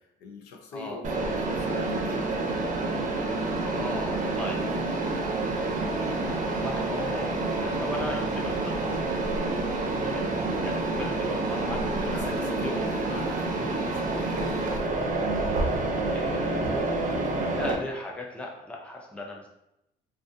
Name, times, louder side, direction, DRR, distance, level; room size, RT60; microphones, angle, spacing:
voice 1, 0.0-2.7 12.0-14.9 17.2-17.4, left 3 dB, 80° left, 2 dB, 0.6 m, -42 dB
Mechanisms, 1.0-17.7, right 2 dB, 50° right, 0.6 m, -28 dB
voice 2, 3.7-5.0 6.2-9.2 10.0-12.3 12.6-12.9 13.6-13.9 16.1-17.2 17.5-19.5, left 1 dB, 5° left, -1 dB, 0.5 m, -38 dB
2.4 x 2.4 x 2.6 m, 0.84 s
cardioid pair, 110°, 17 cm